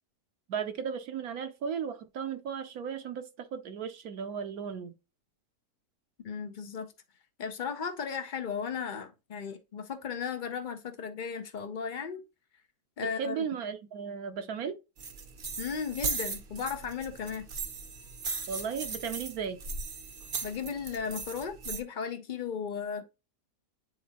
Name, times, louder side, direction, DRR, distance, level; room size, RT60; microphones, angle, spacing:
voice 1, 0.5-4.9 13.2-14.8 18.5-19.6, right 7 dB, 70° right, 1.1 m, -35 dB
voice 2, 6.2-6.9 7.4-12.2 13.0-13.4 15.6-17.5 20.4-23.1, left 6 dB, 80° left, 0.4 m, -35 dB
sound 1, 15.0-21.8, right 4 dB, 45° right, 0.7 m, -38 dB
9.3 x 3.8 x 2.8 m
omnidirectional pair, 1.8 m